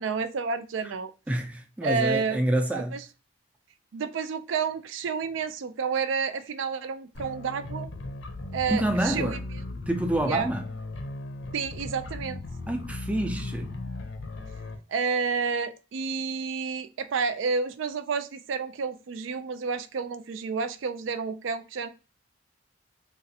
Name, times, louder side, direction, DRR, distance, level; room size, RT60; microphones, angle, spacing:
voice 1, 0.0-1.1 1.8-2.4 2.7-3.0 3.9-7.9 8.5-9.4 10.3-10.5 11.5-12.4 14.9-21.9, right 5 dB, 75° right, 0.4 m, -30 dB
voice 2, 1.3-3.0 8.7-9.4 9.9-10.7 12.7-13.8, right 1 dB, 5° right, 0.3 m, -27 dB
sound 1, 7.1-14.8, left 2 dB, 70° left, 0.6 m, -37 dB
3.8 x 2.4 x 2.7 m
head